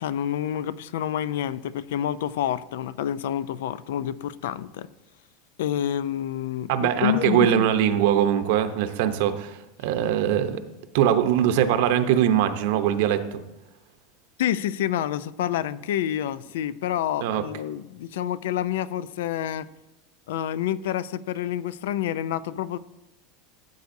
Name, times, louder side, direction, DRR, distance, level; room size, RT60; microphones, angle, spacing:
voice 1, 0.0-4.9 5.6-7.7 14.4-19.7 20.3-22.8, left 11 dB, 80° left, 0.4 m, -28 dB
voice 2, 6.7-10.6 10.9-13.4 17.2-17.4, right 10 dB, 65° right, 0.7 m, -22 dB
13.0 x 8.0 x 2.7 m
supercardioid pair, 160°, 0 cm